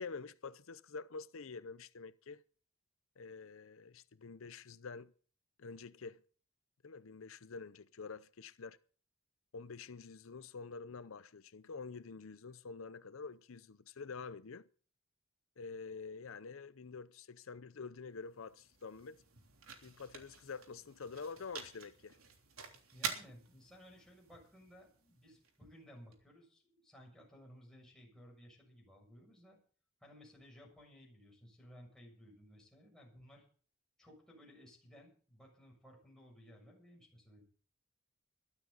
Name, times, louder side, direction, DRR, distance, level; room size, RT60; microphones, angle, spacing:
voice 1, 0.0-2.4 3.2-5.1 5.6-6.2 6.8-8.8 9.5-14.7 15.6-19.2 19.8-22.2, left 4 dB, 70° left, 0.6 m, -47 dB
sound 1, 18.1-26.1, right 6 dB, 90° right, 3.3 m, -48 dB
voice 2, 22.9-29.6 30.0-33.5 34.0-37.4, equal, 5° left, 7.0 m, -58 dB
21.5 x 12.5 x 4.1 m
head